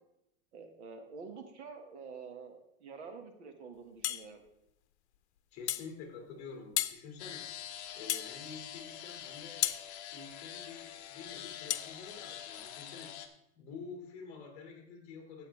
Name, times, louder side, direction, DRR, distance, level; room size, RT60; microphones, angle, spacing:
voice 1, 0.5-4.4, right 5 dB, 85° right, 6 dB, 1.9 m, -48 dB
sound 1, 4.0-4.3 5.7-5.9 6.8-7.0 8.1-8.3 9.6-9.8 11.7-11.9, left 14 dB, 80° left, 0.7 m, -32 dB
voice 2, 5.5-7.5 7.9-9.7 10.1-13.1 13.5-15.5, left 5 dB, 20° left, 2 dB, 2.3 m, -48 dB
sound 2, 7.2-13.3, left 10 dB, 40° left, 1.0 m, -45 dB
12.5 x 8.4 x 3.4 m, 0.81 s
supercardioid pair, 175°, 33 cm